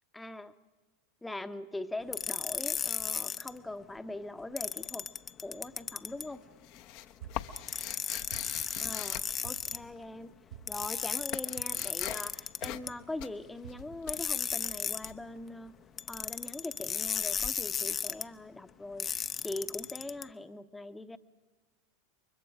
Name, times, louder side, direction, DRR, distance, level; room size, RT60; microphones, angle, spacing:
voice 1, 0.1-0.5 1.2-5.1 5.4-6.4 8.8-10.3 10.7-15.7 16.1-19.1 19.4-21.2, left 2 dB, 10° left, 10 dB, 1.0 m, -41 dB
sound 1, 2.1-3.5 4.6-6.3 7.6-9.8 10.7-12.9 14.1-15.1 16.0-18.2 19.0-20.2, left 7 dB, 25° left, 0.8 m, -34 dB
sound 2, 5.4-5.9 6.2-10.3 10.5-16.1, left 14 dB, 55° left, 0.9 m, -44 dB
sound 3, 7.2-7.6 8.3-8.8 9.4-9.9 10.5-10.9 11.6-12.0 12.6-12.9 13.6-14.0, right 11 dB, 70° right, 6.1 m, -48 dB
29.0 x 23.5 x 5.0 m, 1.3 s
figure-of-eight pair, 85°, 0 cm